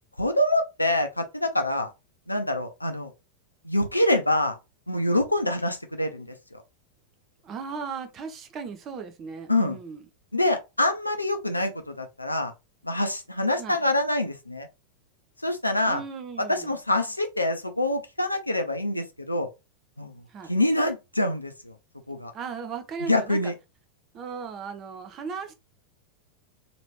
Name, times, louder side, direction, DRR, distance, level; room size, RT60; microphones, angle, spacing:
voice 1, 0.2-1.9 2.3-3.1 3.6-4.5 4.9-6.6 9.5-9.8 10.3-12.5 12.8-14.7 15.4-16.0 16.4-19.5 20.0-20.2 20.5-21.8 22.1-22.3 23.1-23.5, left 1 dB, 85° left, 0.6 m, -25 dB
voice 2, 7.4-10.0 13.6-13.8 15.8-16.7 20.3-20.5 22.3-23.5 24.1-25.5, right 5 dB, 30° right, 0.7 m, -37 dB
3.0 x 3.0 x 3.1 m
figure-of-eight pair, 90°, 0 cm